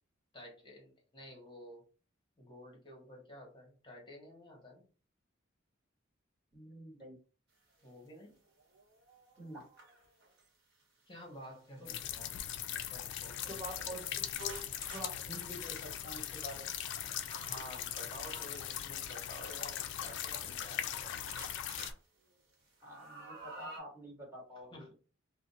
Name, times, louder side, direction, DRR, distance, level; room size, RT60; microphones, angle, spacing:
voice 1, 0.3-1.8 2.4-4.8 7.8-8.3 11.1-14.0 17.4-21.2 24.7-24.9, equal, 25° left, 0 dB, 1.0 m, -52 dB
voice 2, 6.5-7.1 9.4-9.7 11.8-11.9 13.5-14.0 14.4-14.6 14.9-16.7 22.8-24.9, equal, 15° right, -3 dB, 1.2 m, -47 dB
sound 1, 7.9-8.0 8.5-10.5 11.4-11.8 12.5-12.6 12.9-13.0 13.6-17.5 18.2-18.8 19.8-21.0 21.3-21.9 22.3-23.8, right 2 dB, 60° right, 1.0 m, -53 dB
sound 2, 11.9-21.9, left 10 dB, 60° left, 0.3 m, -40 dB
2.4 x 2.0 x 3.9 m, 0.38 s
head